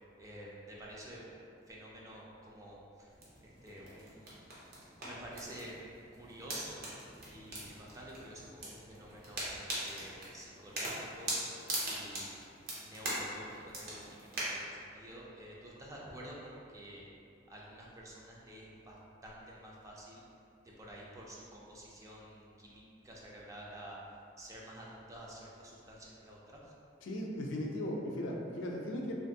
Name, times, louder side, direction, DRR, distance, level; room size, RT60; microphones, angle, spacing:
voice 1, 0.2-1.4 1.7-3.1 3.4-4.3 5.0-5.8 6.1-6.8 7.2-11.3 11.8-12.4 12.7-17.1 17.5-19.0 19.2-20.2 20.6-24.0 24.4-26.6, right 1 dB, 15° right, -4 dB, 0.3 m, -50 dB
sound 1, 3.1-14.4, right 1 dB, 55° right, 0.7 m, -42 dB
voice 2, 27.0-29.1, left 1 dB, 80° left, 0 dB, 0.4 m, -37 dB
2.5 x 2.5 x 2.7 m, 2.5 s
head